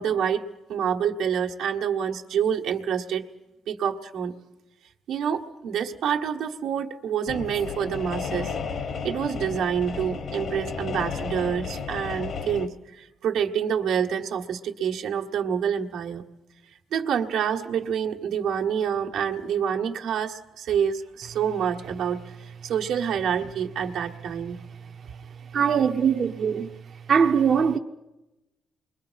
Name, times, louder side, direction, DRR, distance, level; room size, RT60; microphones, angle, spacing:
voice 1, 0.0-3.3 3.7-4.3 5.1-8.5 9.0-16.2 16.9-24.6, right 8 dB, 80° right, 1.5 m, -27 dB
sound 1, 7.3-12.7, left 5 dB, 55° left, 1.4 m, -33 dB
voice 2, 25.5-26.7 27.1-27.8, right 7 dB, 50° right, 0.8 m, -21 dB
28.0 x 22.5 x 5.8 m
cardioid pair, 115°, 0 cm